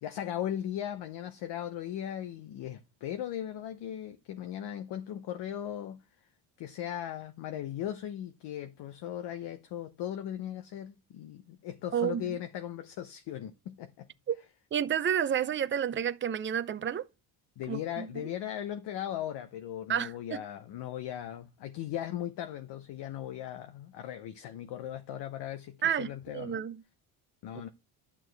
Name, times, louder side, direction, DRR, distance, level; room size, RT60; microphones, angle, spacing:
voice 1, 0.0-6.0 6.6-14.1 17.6-26.6 27.4-27.7, left 11 dB, 60° left, 0.9 m, -38 dB
voice 2, 11.9-12.4 14.3-14.4 14.7-17.1 17.7-18.1 19.9-20.4 25.8-26.8, right 9 dB, 25° right, 0.6 m, -30 dB
11.5 x 6.2 x 3.4 m
cardioid pair, 105°, 47 cm